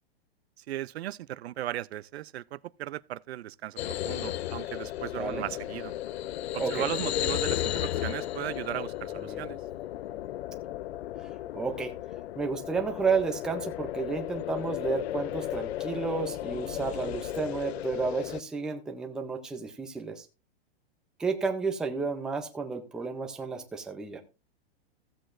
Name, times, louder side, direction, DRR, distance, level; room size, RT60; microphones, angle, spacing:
voice 1, 0.6-5.9 6.5-9.6, right 13 dB, 85° right, 0.6 m, -37 dB
sound 1, 3.8-18.4, left 13 dB, 80° left, 0.5 m, -34 dB
voice 2, 9.1-9.5 11.2-11.3 11.5-11.9 12.4-20.3 21.2-24.2, right 5 dB, ahead, 0.4 m, -32 dB
15.5 x 7.8 x 2.5 m
hypercardioid pair, 155°, 31 cm